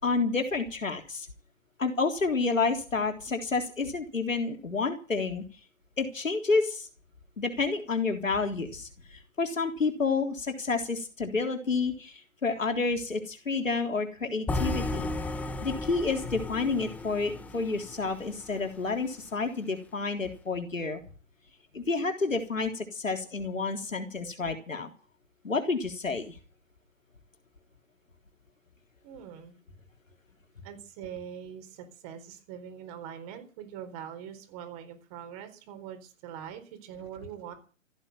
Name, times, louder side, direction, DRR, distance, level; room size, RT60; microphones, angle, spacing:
voice 1, 0.0-1.3 1.8-5.4 6.0-6.9 7.4-15.1 15.6-21.0 21.7-24.9 25.4-26.4, left 4 dB, 80° left, 5 dB, 3.8 m, -29 dB
sound 1, 14.5-18.6, left 2 dB, 5° left, 0.8 m, -34 dB
voice 2, 29.0-29.5 30.6-37.5, right 9 dB, 30° right, 8 dB, 4.2 m, -43 dB
15.5 x 10.0 x 9.0 m, 0.37 s
figure-of-eight pair, 130°, 39 cm